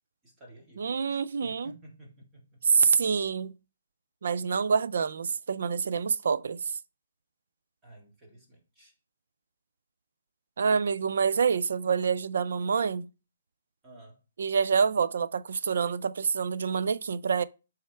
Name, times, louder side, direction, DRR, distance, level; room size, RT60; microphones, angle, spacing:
voice 1, 0.2-2.8 7.8-8.9 13.8-14.2, right 1 dB, 10° right, 2.1 m, -53 dB
voice 2, 0.8-1.7 2.6-3.5 4.2-6.7 10.6-13.1 14.4-17.4, right 6 dB, 65° right, 0.4 m, -26 dB
7.6 x 3.5 x 4.5 m
hypercardioid pair, 160°, 0 cm